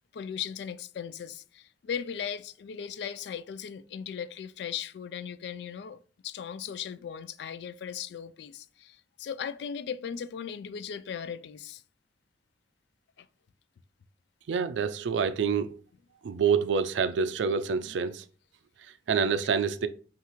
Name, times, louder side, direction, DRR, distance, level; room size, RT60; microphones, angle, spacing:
voice 1, 0.1-6.0 6.2-11.8 13.2-13.3 19.2-19.3, left 8 dB, 65° left, 0.3 m, -37 dB
voice 2, 14.5-15.8 16.2-18.2 19.1-19.9, right 6 dB, 90° right, 0.4 m, -27 dB
5.6 x 2.4 x 3.0 m
head